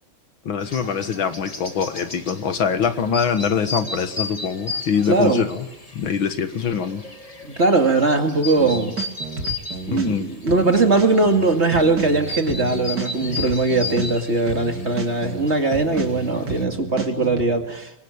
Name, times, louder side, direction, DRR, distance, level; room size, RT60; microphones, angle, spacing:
voice 1, 0.5-5.7 5.9-7.0 9.9-10.3, left 6 dB, 75° left, 9 dB, 2.3 m, -23 dB
sound 1, 0.6-16.6, left 3 dB, 20° left, 1.9 m, -35 dB
voice 2, 5.1-5.5 7.4-9.0 9.9-17.9, right 3 dB, 30° right, 4 dB, 2.6 m, -20 dB
sound 2, 8.6-10.1 10.5-17.4, right 4 dB, 55° right, 3.3 m, -31 dB
25.5 x 23.5 x 8.8 m, 0.89 s
omnidirectional pair, 2.2 m